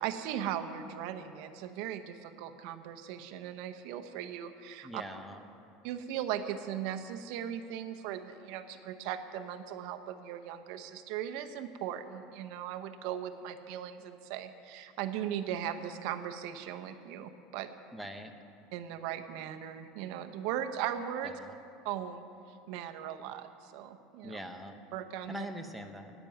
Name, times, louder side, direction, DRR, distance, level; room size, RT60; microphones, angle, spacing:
voice 1, 0.0-5.0 5.8-17.7 18.7-21.3 21.8-22.2 22.7-24.4 24.9-25.5, right 10 dB, 60° right, 8 dB, 0.9 m, -38 dB
voice 2, 4.8-5.4 17.9-18.3 21.4-21.5 24.2-24.7 25.3-26.1, equal, ahead, 3 dB, 0.9 m, -42 dB
10.5 x 9.1 x 9.1 m, 2.5 s
supercardioid pair, 150°, 0 cm